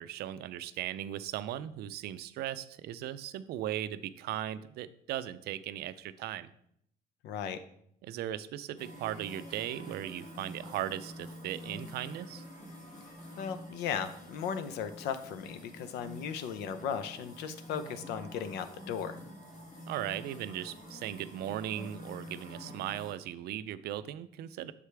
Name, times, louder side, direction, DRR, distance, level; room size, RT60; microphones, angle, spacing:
voice 1, 0.0-6.5 8.0-12.4 19.9-24.7, right 12 dB, 70° right, 14 dB, 0.4 m, -38 dB
voice 2, 7.2-7.6 13.4-19.2, left 7 dB, 85° left, 11 dB, 0.6 m, -36 dB
sound 1, 8.8-23.1, left 1 dB, 45° left, 1.8 m, -47 dB
6.7 x 4.8 x 3.3 m, 0.71 s
cardioid pair, 110°, 17 cm